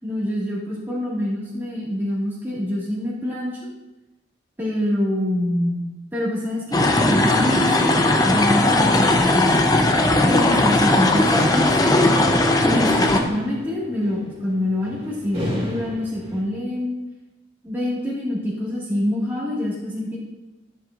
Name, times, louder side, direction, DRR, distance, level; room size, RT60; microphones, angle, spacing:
voice 1, 0.0-3.7 4.6-5.9 6.1-7.9 8.2-9.5 10.2-12.2 12.6-17.0 17.6-20.2, left 1 dB, 10° right, -8 dB, 1.9 m, -25 dB
sound 1, 6.7-13.2, left 2 dB, 20° left, 0.6 m, -18 dB
sound 2, 11.4-16.4, equal, 30° right, 2.5 m, -33 dB
13.0 x 7.5 x 2.5 m, 1.0 s
head